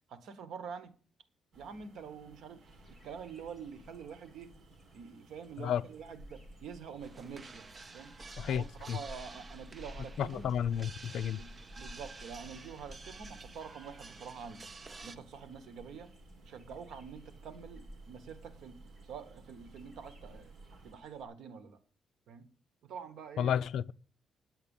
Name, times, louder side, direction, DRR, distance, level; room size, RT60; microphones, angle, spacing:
voice 1, 0.1-0.9 1.5-2.6 2.9-4.5 4.9-7.6 7.9-8.1 8.5-10.5 11.4-14.7 15.0-16.1 16.4-20.5 20.8-21.8 22.3-22.5 22.8-23.5, right 6 dB, 80° right, 1.3 m, -46 dB
sound 1, 1.5-20.9, right 3 dB, 60° right, 2.1 m, -58 dB
sound 2, 2.7-21.2, left 1 dB, ahead, 2.5 m, -54 dB
sound 3, 7.0-15.2, right 4 dB, 25° right, 0.5 m, -51 dB
voice 2, 8.4-9.0 10.2-11.4 23.4-23.9, left 9 dB, 70° left, 0.4 m, -32 dB
9.7 x 7.9 x 7.1 m
cardioid pair, 170°, 0 cm